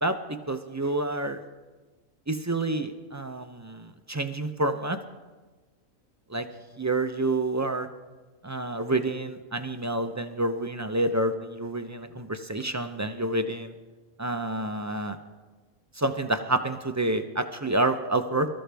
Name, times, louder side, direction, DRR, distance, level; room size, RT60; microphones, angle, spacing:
voice 1, 0.5-1.4 2.3-5.0 6.3-6.5 6.8-7.9 8.4-13.7 14.2-15.2 16.0-18.5, right 2 dB, 25° right, 7 dB, 0.3 m, -28 dB
23.5 x 13.5 x 3.4 m, 1.3 s
omnidirectional pair, 1.4 m